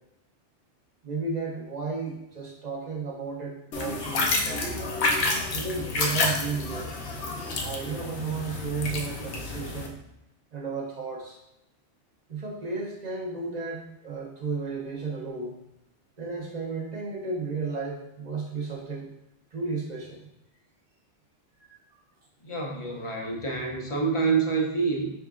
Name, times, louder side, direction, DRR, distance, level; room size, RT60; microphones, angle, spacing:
voice 1, 1.0-4.9 5.5-7.0 7.5-10.0 10.5-11.4 12.3-15.6 16.2-19.1 19.5-20.3 21.7-22.0, right 4 dB, 45° right, -2 dB, 0.6 m, -33 dB
sound 1, 3.7-9.9, left 2 dB, 65° left, 0.9 m, -29 dB
voice 2, 22.4-25.1, right 4 dB, 35° left, 0 dB, 0.5 m, -27 dB
4.5 x 3.6 x 2.4 m, 0.85 s
omnidirectional pair, 1.2 m